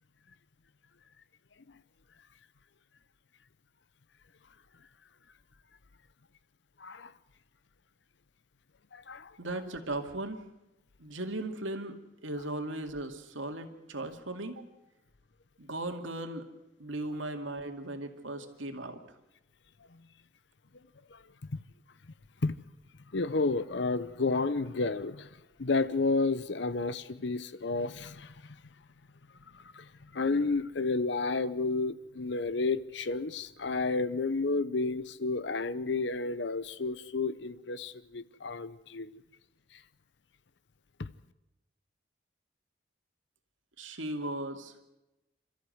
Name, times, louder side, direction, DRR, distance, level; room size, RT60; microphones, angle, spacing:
voice 1, 6.8-7.1 8.9-9.3 21.1-21.2 21.5-21.6 22.4-22.6 23.1-25.3 25.6-28.3 29.5-29.8 30.1-39.2 41.0-41.1, left 3 dB, 60° left, 0.7 m, -31 dB
voice 2, 9.4-10.4 11.0-12.0 12.2-14.7 15.6-16.5 16.8-19.0 43.8-44.7, right 2 dB, 75° right, 2.3 m, -37 dB
27.5 x 14.0 x 7.9 m
head